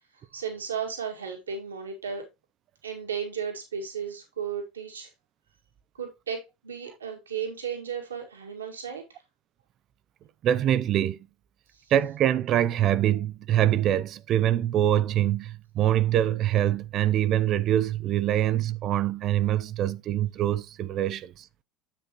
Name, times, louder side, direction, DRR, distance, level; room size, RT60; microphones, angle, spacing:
voice 1, 0.3-2.2 2.8-5.1 6.0-9.0, right 7 dB, 85° right, 1.9 m, -34 dB
voice 2, 10.4-11.2 11.9-21.5, right 11 dB, 45° right, 0.4 m, -24 dB
7.7 x 7.4 x 2.9 m
figure-of-eight pair, 70°, 0 cm